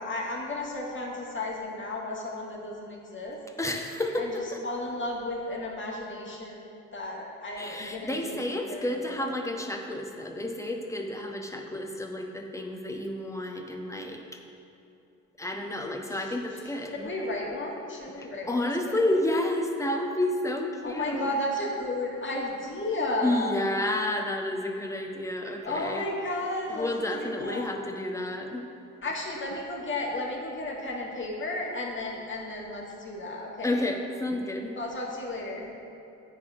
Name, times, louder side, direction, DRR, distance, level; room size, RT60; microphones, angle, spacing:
voice 1, 0.0-3.4 4.2-6.6 6.9-9.3 17.0-19.0 20.8-23.7 25.6-27.7 29.0-33.8 34.8-35.7, left 2 dB, 30° left, -2 dB, 1.8 m, -33 dB
voice 2, 3.6-4.6 7.6-14.4 15.4-17.1 18.2-21.3 23.2-26.1 26.7-28.6 33.6-34.8, left 1 dB, 10° left, 2 dB, 1.0 m, -30 dB
9.1 x 4.2 x 6.2 m, 2.8 s
figure-of-eight pair, 45°, 38 cm